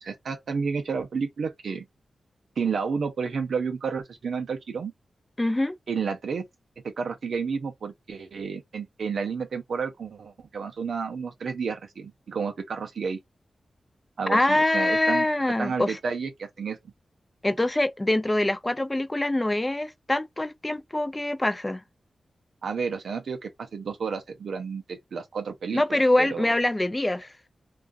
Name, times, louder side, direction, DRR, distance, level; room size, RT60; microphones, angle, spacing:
voice 1, 0.0-1.8 2.6-4.9 5.9-6.4 7.0-13.2 14.2-15.3 15.6-16.8 22.6-26.5, right 5 dB, 80° right, 0.5 m, -31 dB
voice 2, 5.4-5.7 14.3-16.0 17.4-21.8 25.7-27.3, left 1 dB, 20° left, 0.5 m, -24 dB
2.4 x 2.3 x 2.4 m
cardioid pair, 50°, 0 cm